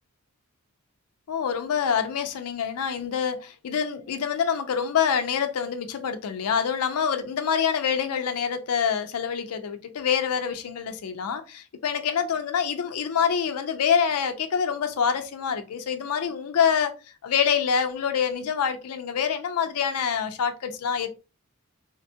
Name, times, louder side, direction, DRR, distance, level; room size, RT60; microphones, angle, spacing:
voice 1, 1.3-21.1, left 7 dB, 85° left, 0.4 m, -26 dB
3.4 x 2.2 x 2.7 m
head